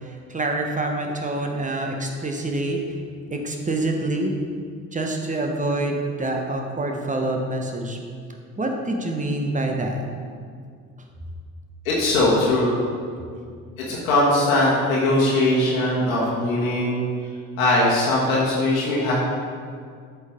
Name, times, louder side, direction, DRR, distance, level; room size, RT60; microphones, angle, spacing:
voice 1, 0.0-2.8 3.3-4.4 4.9-8.0 8.6-10.0, right 2 dB, 20° right, 2 dB, 1.1 m, -26 dB
voice 2, 11.8-12.8 13.8-17.0 17.6-19.1, left 1 dB, 80° left, -6 dB, 1.4 m, -20 dB
7.7 x 5.7 x 3.6 m, 2.1 s
hypercardioid pair, 55°, 40 cm